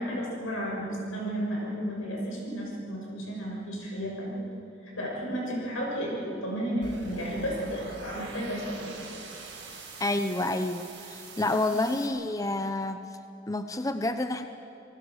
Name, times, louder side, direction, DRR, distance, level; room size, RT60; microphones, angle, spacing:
voice 1, 0.0-4.5 4.8-9.1 11.7-12.1, equal, 90° left, -3 dB, 7.5 m, -33 dB
sound 1, 6.8-12.1, right 3 dB, 60° right, 5.7 m, -44 dB
voice 2, 10.0-13.0 13.5-14.5, left 2 dB, 15° left, 8 dB, 0.6 m, -29 dB
28.0 x 19.5 x 6.6 m, 2.7 s
head